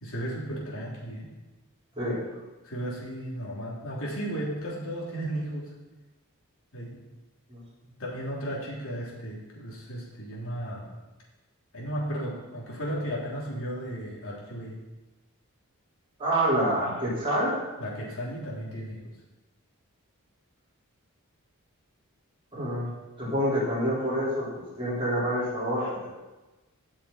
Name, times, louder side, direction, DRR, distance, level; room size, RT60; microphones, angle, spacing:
voice 1, 0.0-1.3 2.6-5.7 6.7-7.0 8.0-10.9 11.7-14.8 17.8-19.0 25.8-25.9, equal, 65° left, -4 dB, 3.2 m, -34 dB
voice 2, 16.2-17.5 22.5-22.9 23.2-26.1, equal, 25° right, -8 dB, 4.6 m, -27 dB
17.0 x 6.5 x 4.3 m, 1.1 s
head